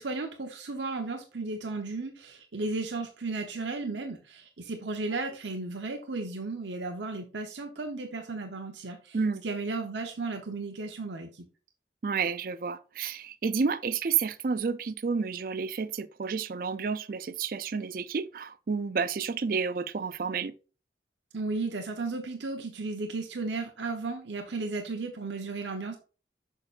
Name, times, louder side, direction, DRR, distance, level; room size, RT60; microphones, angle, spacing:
voice 1, 0.0-11.5 21.3-26.0, right 3 dB, 90° right, 0.9 m, -34 dB
voice 2, 12.0-20.5, right 5 dB, 50° right, 0.4 m, -30 dB
6.7 x 6.0 x 2.5 m
head